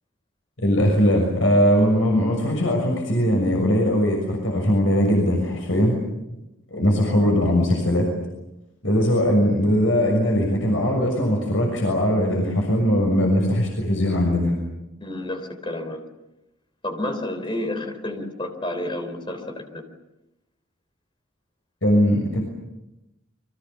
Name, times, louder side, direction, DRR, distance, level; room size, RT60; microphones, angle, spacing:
voice 1, 0.6-6.0 6.7-8.1 8.8-14.5 21.8-22.4, equal, 75° left, 1 dB, 6.4 m, -20 dB
voice 2, 15.0-16.0 16.8-19.9, left 1 dB, 25° left, 6 dB, 3.8 m, -30 dB
29.5 x 24.5 x 7.1 m, 0.94 s
head